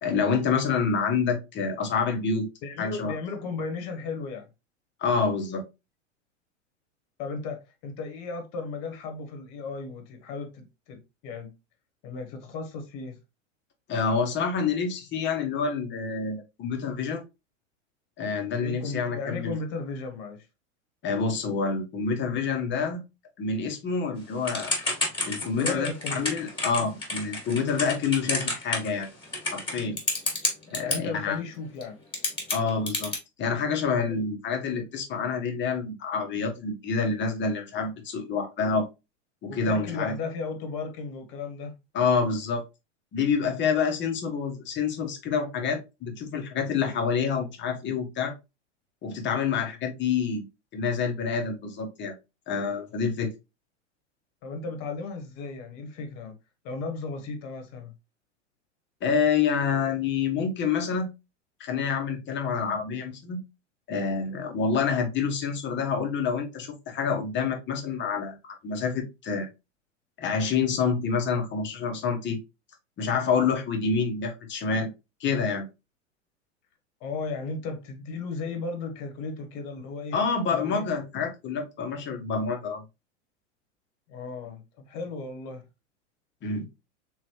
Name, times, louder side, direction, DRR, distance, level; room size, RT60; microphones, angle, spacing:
voice 1, 0.0-2.5 2.8-3.1 5.0-5.6 13.9-17.2 18.2-19.5 21.0-23.0 23.4-24.7 25.2-29.1 29.5-30.0 30.7-31.4 32.5-33.1 33.4-38.9 39.4-40.1 41.9-42.6 43.1-48.3 49.0-50.5 50.7-52.1 52.5-53.3 59.0-61.1 61.6-63.4 63.9-68.4 68.6-69.5 70.2-72.4 73.0-74.9 75.2-75.7 80.1-82.8 86.4-86.7, left 5 dB, 30° left, 1.1 m, -27 dB
voice 2, 2.6-4.5 7.2-11.5 12.0-13.2 18.6-20.5 25.6-26.4 30.8-32.0 34.1-34.2 39.5-41.8 54.4-56.3 56.6-57.9 77.0-80.2 80.5-80.9 84.1-85.6, left 4 dB, 50° left, 1.3 m, -35 dB
Typing / Telephone, 24.5-31.0 31.8-31.9 32.1-33.2, left 2 dB, 15° left, 1.8 m, -29 dB
3.7 x 3.1 x 3.1 m
hypercardioid pair, 100°, 37 cm